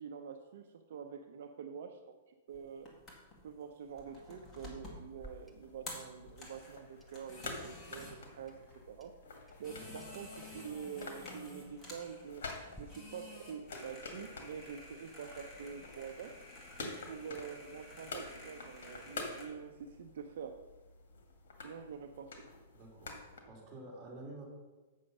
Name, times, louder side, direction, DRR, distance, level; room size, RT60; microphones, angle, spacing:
voice 1, 0.0-2.2 2.5-2.9 3.4-8.6 8.9-9.1 9.6-16.3 16.8-20.6 21.6-22.4, right 7 dB, 65° right, 5 dB, 0.6 m, -46 dB
sound 1, 2.5-19.5, left 1 dB, 20° left, 1.9 m, -52 dB
Clock, 5.1-12.8, right 1 dB, ahead, 0.7 m, -61 dB
sound 2, 5.2-23.4, left 3 dB, 75° left, 1.9 m, -49 dB
voice 2, 22.7-24.4, right 2 dB, 20° right, -4 dB, 2.8 m, -50 dB
8.1 x 6.3 x 5.4 m, 1.2 s
hypercardioid pair, 155°, 0 cm